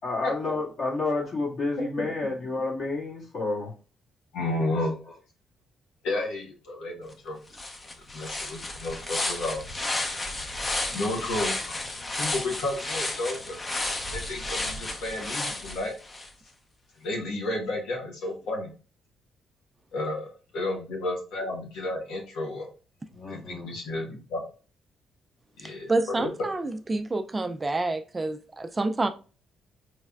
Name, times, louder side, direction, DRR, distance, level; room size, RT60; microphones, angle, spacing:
voice 1, 0.0-3.7 23.1-23.7, left 3 dB, 55° left, 1.9 m, -30 dB
voice 2, 4.3-5.0 6.0-7.4 8.1-9.6 10.0-10.5 10.9-11.8 12.2-13.6 14.1-15.9 17.0-18.7 19.9-22.7 23.3-24.4 25.6-25.9 26.2-26.3, left 2 dB, 85° left, 1.1 m, -32 dB
sound 1, 7.1-7.2 7.5-16.3, left 2 dB, 25° left, 0.7 m, -32 dB
voice 3, 25.9-29.1, right 2 dB, 25° right, 0.4 m, -28 dB
4.1 x 3.2 x 2.3 m
cardioid pair, 90°, 0 cm